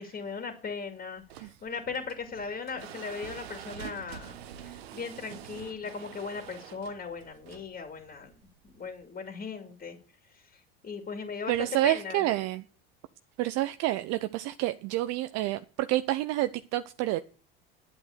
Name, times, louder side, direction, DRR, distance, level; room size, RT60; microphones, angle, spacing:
voice 1, 0.0-8.4 8.6-10.0 10.3-12.3, left 5 dB, 30° left, 2.6 m, -38 dB
sound 1, 1.1-9.0, right 10 dB, 90° right, 1.1 m, -47 dB
voice 2, 11.5-12.6 13.4-17.2, right 16 dB, 60° right, 0.7 m, -28 dB
9.9 x 8.3 x 6.6 m
hypercardioid pair, 90°, 30 cm